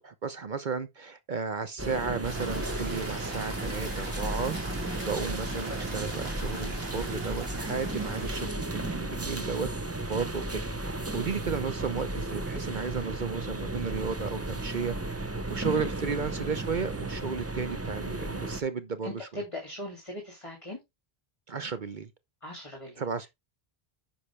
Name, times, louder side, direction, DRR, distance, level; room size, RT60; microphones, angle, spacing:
voice 1, 0.0-4.5 5.0-9.7 10.1-19.4 21.5-22.1 23.0-23.3, right 5 dB, 50° right, 0.9 m, -34 dB
sound 1, 1.8-18.6, right 2 dB, 15° right, 0.7 m, -34 dB
sound 2, 2.2-8.5, right 2 dB, 75° right, 3.1 m, -42 dB
voice 2, 19.0-20.8 22.4-23.0, left 1 dB, 30° left, 2.5 m, -39 dB
10.0 x 5.9 x 3.2 m
omnidirectional pair, 1.0 m